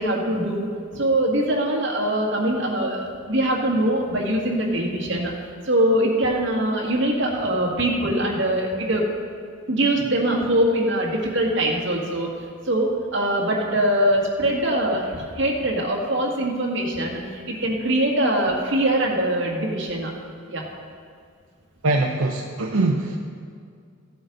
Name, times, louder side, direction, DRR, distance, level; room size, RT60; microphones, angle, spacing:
voice 1, 0.0-5.3 5.6-9.0 9.7-12.3 12.6-20.1 20.5-20.7, right 1 dB, 55° right, -2 dB, 2.0 m, -23 dB
voice 2, 21.8-23.2, right 2 dB, 80° right, 0 dB, 0.8 m, -22 dB
15.5 x 7.8 x 4.0 m, 2.2 s
head